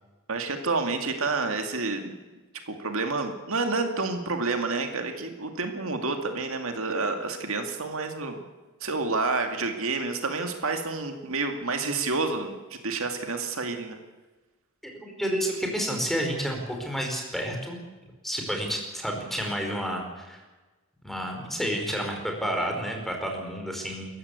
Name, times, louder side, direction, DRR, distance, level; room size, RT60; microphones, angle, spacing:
voice 1, 0.3-2.1 2.7-8.4 8.8-12.6 12.8-14.0, right 3 dB, 65° right, 5 dB, 2.3 m, -29 dB
voice 2, 14.8-17.8 18.2-20.4 21.0-24.2, equal, ahead, 2 dB, 5.1 m, -30 dB
27.5 x 15.0 x 8.4 m, 1.2 s
head